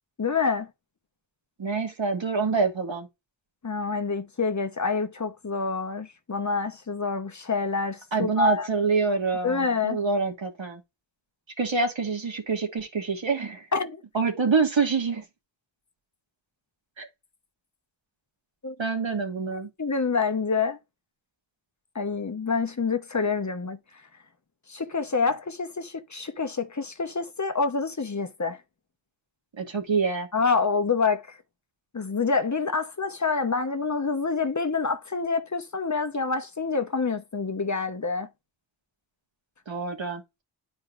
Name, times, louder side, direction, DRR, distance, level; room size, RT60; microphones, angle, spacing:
voice 1, 0.2-0.7 3.6-8.7 9.4-10.0 13.7-14.0 18.6-18.7 19.5-20.8 21.9-23.8 24.7-28.6 30.3-31.2 31.9-38.3, left 4 dB, 40° left, 1.0 m, -27 dB
voice 2, 1.6-3.1 8.1-10.8 11.6-13.7 14.1-15.2 17.0-17.1 18.8-19.7 29.5-30.3 39.7-40.2, right 4 dB, 85° right, 2.2 m, -26 dB
11.0 x 4.6 x 2.5 m
wide cardioid pair, 85°, 45 cm